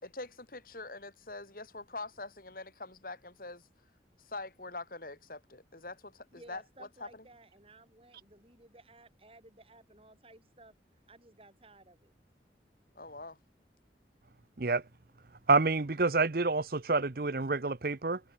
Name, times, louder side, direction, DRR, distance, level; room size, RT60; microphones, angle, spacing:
voice 1, 0.0-3.6 4.2-7.2 12.9-13.4, left 2 dB, 50° left, 3.2 m, -44 dB
voice 2, 6.3-10.7 11.1-12.1, right 2 dB, 30° right, 7.2 m, -57 dB
voice 3, 15.5-18.2, right 3 dB, 55° right, 0.9 m, -28 dB
head